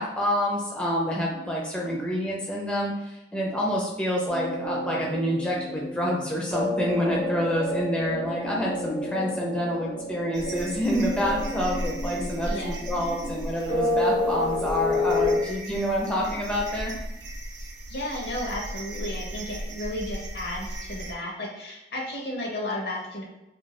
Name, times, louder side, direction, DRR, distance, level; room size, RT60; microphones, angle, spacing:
voice 1, 0.0-16.9, equal, 5° left, -4 dB, 0.4 m, -27 dB
sound 1, 4.3-15.4, left 2 dB, 85° left, 1.1 m, -30 dB
sound 2, 10.3-21.1, right 1 dB, 85° right, 0.5 m, -37 dB
voice 2, 12.4-12.8 17.9-23.2, left 1 dB, 65° left, -1 dB, 0.8 m, -33 dB
2.6 x 2.2 x 3.1 m, 0.91 s
head